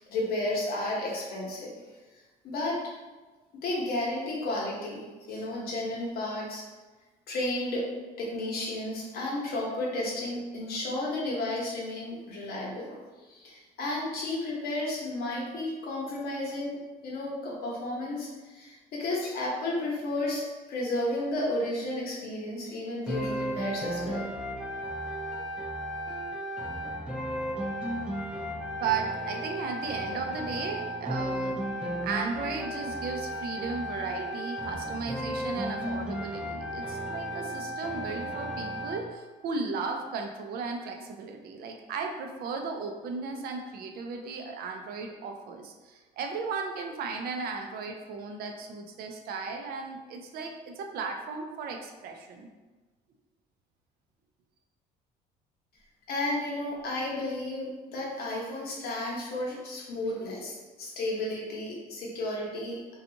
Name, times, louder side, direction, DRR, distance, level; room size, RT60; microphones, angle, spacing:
voice 1, 0.1-1.7 2.1-2.8 3.6-6.6 7.3-7.9 8.2-24.3 56.1-63.0, left 1 dB, 65° left, -3 dB, 0.9 m, -33 dB
sound 1, 23.1-39.1, equal, 5° right, 0.4 m, -34 dB
voice 2, 28.8-52.5, right 4 dB, 65° right, 3 dB, 0.4 m, -35 dB
2.6 x 2.3 x 2.7 m, 1.3 s
cardioid pair, 110°, 17 cm